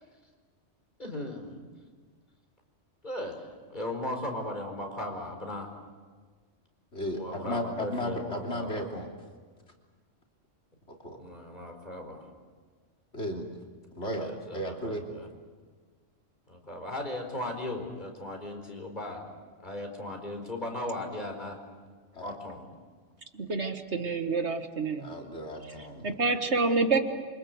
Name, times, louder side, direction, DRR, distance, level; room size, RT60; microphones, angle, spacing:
voice 1, 1.0-1.6 3.0-3.4 3.7-5.7 7.1-8.7 11.2-12.2 14.0-15.3 16.5-19.2 19.6-21.6 22.2-22.6, left 1 dB, 40° left, 2 dB, 4.6 m, -37 dB
voice 2, 6.9-9.1 10.9-11.2 13.1-13.5 14.0-15.1 22.1-22.4 25.0-26.1, left 1 dB, 65° left, 1 dB, 3.5 m, -35 dB
voice 3, 23.3-25.1 26.0-27.0, right 3 dB, 65° right, 7 dB, 1.8 m, -27 dB
27.5 x 25.0 x 8.0 m, 1.5 s
omnidirectional pair, 1.3 m